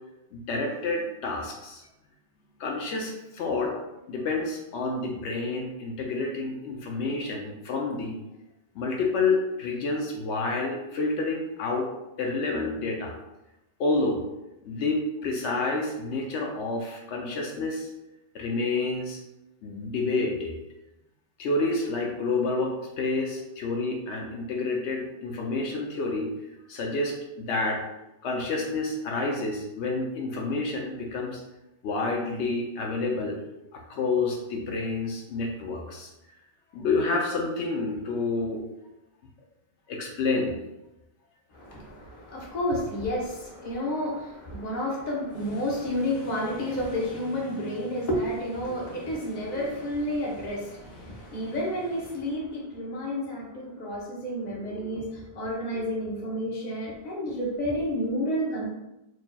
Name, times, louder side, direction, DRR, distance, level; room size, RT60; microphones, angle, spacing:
voice 1, 0.3-1.8 2.6-3.7 4.1-8.2 8.7-11.9 12.2-13.1 13.8-14.2 14.6-17.9 18.3-19.2 19.6-20.5 21.4-26.3 26.7-27.8 28.2-31.4 31.8-33.4 33.7-36.1 36.7-38.6 39.9-40.6, left 3 dB, 80° left, 1 dB, 0.9 m, -29 dB
voice 2, 41.5-58.7, equal, 40° left, -3 dB, 1.0 m, -30 dB
4.7 x 2.8 x 2.2 m, 0.93 s
omnidirectional pair, 1.1 m